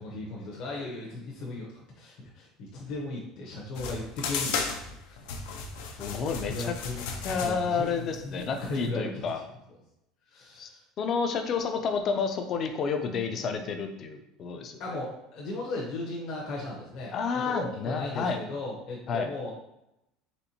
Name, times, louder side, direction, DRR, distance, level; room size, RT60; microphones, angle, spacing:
voice 1, 0.0-4.8 5.1-5.3 5.8-6.2 6.5-7.1 7.3-9.2 10.3-10.8 14.8-19.5, left 2 dB, 50° left, -4 dB, 0.8 m, -37 dB
sound 1, 3.8-8.9, left 5 dB, 80° left, 0.6 m, -35 dB
voice 2, 6.0-6.7 7.2-9.4 10.6-10.7 11.0-14.8 17.1-18.4 19.1-19.3, left 5 dB, 30° left, 6 dB, 0.4 m, -30 dB
4.3 x 3.5 x 2.8 m, 0.84 s
cardioid pair, 170°, 0 cm